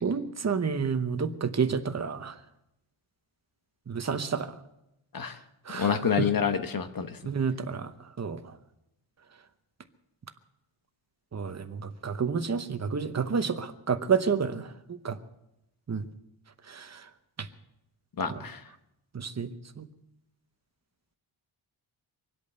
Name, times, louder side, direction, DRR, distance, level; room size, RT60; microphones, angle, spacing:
voice 1, 0.0-2.3 3.9-4.5 5.7-6.3 7.2-7.9 8.2-8.4 11.3-14.7 15.0-15.2 15.9-16.0 16.7-16.9 18.3-18.4 19.1-19.5 19.8-19.9, right 6 dB, 35° right, 9 dB, 1.0 m, -29 dB
voice 2, 5.7-7.2 18.2-18.6, left 7 dB, 45° left, 9 dB, 1.2 m, -27 dB
24.5 x 8.5 x 6.8 m, 0.86 s
wide cardioid pair, 160°, 49 cm